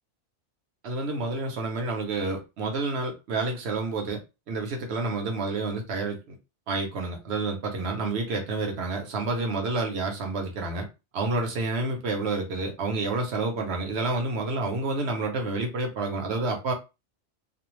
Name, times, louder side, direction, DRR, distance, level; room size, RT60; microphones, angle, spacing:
voice 1, 0.8-4.2 4.5-6.4 6.7-10.9 11.1-16.7, right 3 dB, 65° right, 3 dB, 0.9 m, -29 dB
2.5 x 2.0 x 3.0 m, 0.26 s
omnidirectional pair, 1.2 m